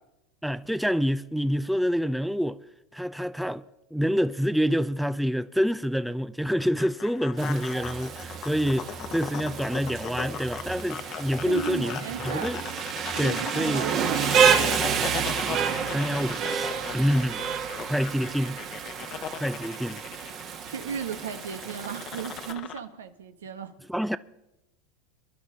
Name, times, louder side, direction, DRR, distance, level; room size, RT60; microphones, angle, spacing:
voice 1, 0.4-2.6 2.9-3.6 3.9-12.0 12.3-12.6 13.2-13.9 15.9-17.4 17.8-18.6 19.3-20.0 23.9-24.2, equal, ahead, 0.4 m, -27 dB
sound 1, 6.6-22.8, left 9 dB, 45° left, 0.9 m, -39 dB
Rain, 7.4-22.5, right 7 dB, 45° right, 1.6 m, -29 dB
sound 2, 7.8-13.6, right 5 dB, 20° right, 1.5 m, -45 dB
voice 2, 11.4-12.5 13.1-14.5 20.6-23.8, right 7 dB, 90° right, 1.0 m, -35 dB
23.5 x 11.5 x 3.8 m
hypercardioid pair, 95°, 0 cm